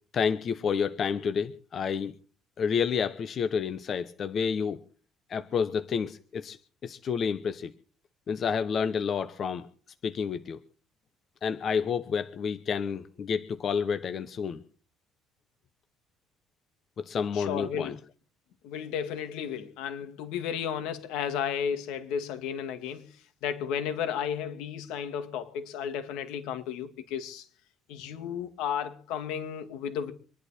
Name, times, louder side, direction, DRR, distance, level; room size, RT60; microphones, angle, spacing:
voice 1, 0.1-2.1 2.6-4.8 5.3-6.6 6.8-7.7 8.3-9.7 10.0-10.6 11.4-14.6 17.0-17.9, left 6 dB, 35° left, 0.8 m, -29 dB
voice 2, 17.3-18.0 18.6-23.2 23.4-27.5 27.9-30.1, left 8 dB, 85° left, 2.2 m, -33 dB
25.5 x 11.0 x 4.3 m
cardioid pair, 170°, 0 cm